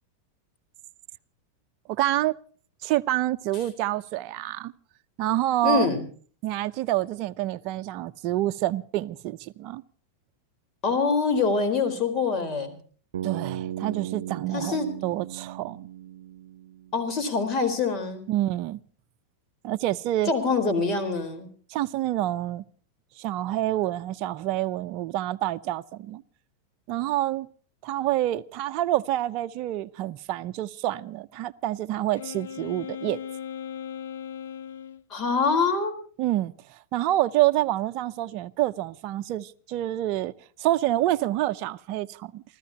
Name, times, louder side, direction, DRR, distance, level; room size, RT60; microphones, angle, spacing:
voice 1, 1.9-2.3 2.8-4.7 5.2-5.9 6.4-9.8 13.2-15.9 18.3-18.8 19.6-20.3 21.7-22.6 23.2-26.2 26.9-27.5 27.8-33.2 36.2-40.3 40.6-42.4, right 14 dB, 50° right, 0.6 m, -27 dB
voice 2, 5.6-6.1 10.8-12.8 14.5-14.9 16.9-18.3 20.3-21.5 35.1-35.9, left 4 dB, 35° left, 4.2 m, -25 dB
Bass guitar, 13.1-17.1, right 11 dB, 90° right, 0.7 m, -36 dB
Wind instrument woodwind instrument, 32.1-35.0, left 8 dB, 80° left, 0.8 m, -37 dB
28.5 x 14.0 x 2.9 m
hypercardioid pair, 120°, 0 cm